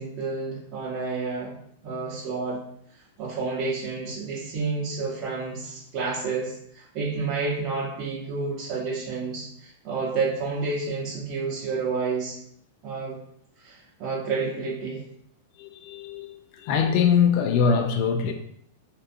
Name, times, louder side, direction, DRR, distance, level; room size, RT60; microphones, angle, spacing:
voice 1, 0.0-1.5 1.8-2.6 3.2-12.4 12.8-13.1 13.6-15.0, right 4 dB, 40° right, 0.7 m, -30 dB
voice 2, 15.6-18.3, left 6 dB, 50° left, 0.3 m, -23 dB
2.5 x 2.4 x 2.5 m
hypercardioid pair, 130°, 0 cm